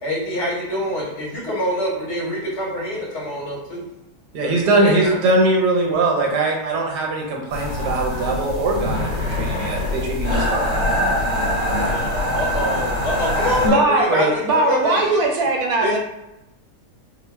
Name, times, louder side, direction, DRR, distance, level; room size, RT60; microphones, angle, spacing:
voice 1, 0.0-3.8 4.4-5.4 11.7-15.2 15.8-16.0, left 1 dB, 70° left, -5 dB, 1.7 m, -26 dB
voice 2, 4.3-10.7, right 2 dB, 90° right, -1 dB, 1.4 m, -21 dB
sound 1, 7.5-13.7, left 1 dB, 30° left, 1.0 m, -23 dB
voice 3, 13.6-16.0, right 2 dB, 70° right, 2 dB, 1.0 m, -19 dB
5.4 x 2.1 x 2.3 m, 0.91 s
omnidirectional pair, 1.8 m